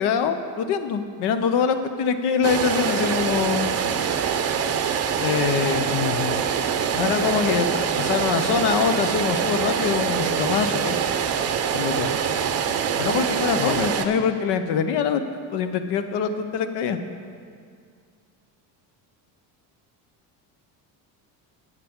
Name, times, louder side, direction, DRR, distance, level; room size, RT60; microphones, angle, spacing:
voice 1, 0.0-3.8 5.2-5.9 6.8-11.0 11.7-12.1 13.0-17.0, left 6 dB, 65° left, 10 dB, 0.8 m, -24 dB
sound 1, 2.4-14.0, right 7 dB, 35° right, 0.6 m, -24 dB
voice 2, 5.9-6.5 13.5-13.9, left 11 dB, 45° left, 9 dB, 0.4 m, -29 dB
11.5 x 8.3 x 3.7 m, 2.1 s
cardioid pair, 115°, 42 cm